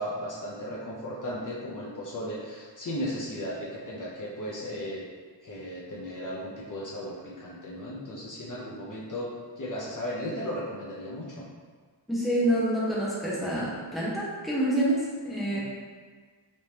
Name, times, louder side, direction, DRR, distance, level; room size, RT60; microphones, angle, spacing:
voice 1, 0.0-5.0 5.4-9.3 9.6-11.4 15.4-15.6, equal, 45° left, -6 dB, 0.7 m, -35 dB
voice 2, 12.1-15.6, right 1 dB, ahead, -7 dB, 0.9 m, -27 dB
3.2 x 3.2 x 2.9 m, 1.5 s
wide cardioid pair, 110°, 45 cm